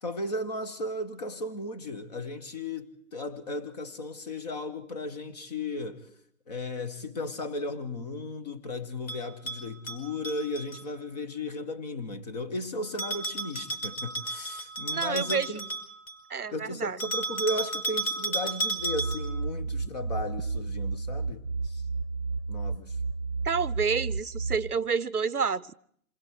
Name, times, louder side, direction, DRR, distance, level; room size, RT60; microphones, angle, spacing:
voice 1, 0.0-6.1 6.5-15.7 16.5-21.8 22.5-23.0, left 1 dB, 25° left, 1.5 m, -35 dB
Bell, 9.1-10.8 13.0-16.2 17.0-19.4, right 2 dB, 65° left, 5.3 m, -33 dB
voice 2, 14.9-15.5 16.3-17.0 23.4-25.7, right 5 dB, 90° right, 0.8 m, -29 dB
sound 1, 18.8-24.6, right 4 dB, 20° right, 0.8 m, -32 dB
27.0 x 20.5 x 4.8 m
figure-of-eight pair, 150°, 44 cm